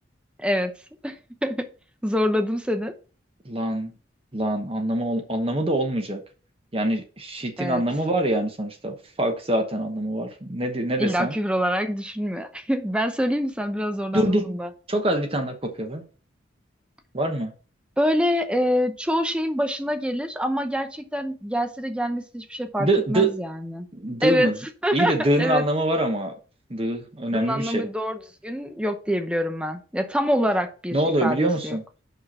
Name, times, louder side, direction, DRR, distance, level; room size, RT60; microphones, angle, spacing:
voice 1, 0.4-0.7 1.0-1.7 2.0-2.9 7.6-7.8 11.0-14.7 18.0-23.9 24.2-24.5 24.8-25.7 27.3-31.8, equal, 5° right, 0.7 m, -25 dB
voice 2, 3.4-3.9 4.3-6.2 6.7-11.3 14.1-14.6 14.9-16.0 17.1-17.5 22.8-23.3 23.9-24.6 24.9-26.3 26.7-27.8 30.9-31.8, right 1 dB, 30° right, 1.0 m, -24 dB
5.7 x 5.5 x 5.9 m
head